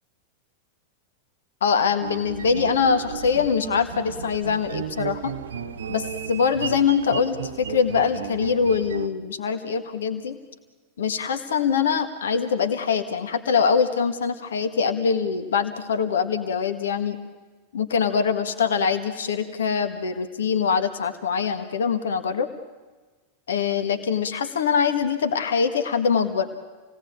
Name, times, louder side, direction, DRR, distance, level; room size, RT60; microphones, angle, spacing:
voice 1, 1.6-5.3 5.9-10.4 11.0-17.2 17.7-22.5 23.5-26.5, left 6 dB, 65° left, 8 dB, 1.6 m, -23 dB
sound 1, 2.0-9.1, right 7 dB, 65° right, 0.9 m, -34 dB
28.0 x 18.0 x 8.7 m, 1.3 s
figure-of-eight pair, 90°, 0 cm